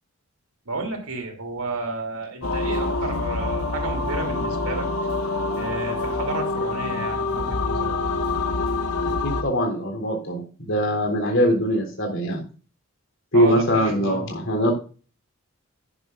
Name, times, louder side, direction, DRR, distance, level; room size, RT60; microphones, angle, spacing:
voice 1, 0.6-4.9 5.6-7.9 13.3-14.3, right 3 dB, 85° right, 3 dB, 3.1 m, -31 dB
sound 1, 2.4-9.4, left 3 dB, 80° left, 1.1 m, -26 dB
voice 2, 9.2-12.4 13.3-14.7, equal, 60° left, 2 dB, 3.6 m, -22 dB
11.5 x 10.0 x 2.6 m, 0.37 s
head